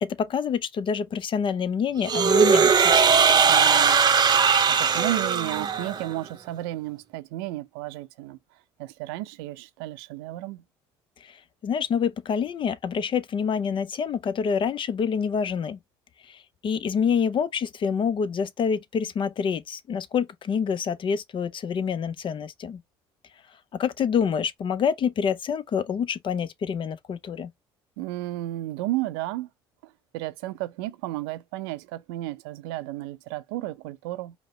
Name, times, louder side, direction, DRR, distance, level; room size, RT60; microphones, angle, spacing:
voice 1, 0.0-2.8 11.2-11.4 11.6-15.8 16.3-22.8 23.8-27.5, left 7 dB, 45° left, 0.6 m, -27 dB
sound 1, 2.0-6.1, right 6 dB, 35° right, 0.7 m, -19 dB
voice 2, 3.5-4.0 4.3-8.4 8.8-10.6 28.0-29.5 29.8-34.3, right 16 dB, 80° right, 0.6 m, -33 dB
5.1 x 2.1 x 3.1 m
hypercardioid pair, 65°, 12 cm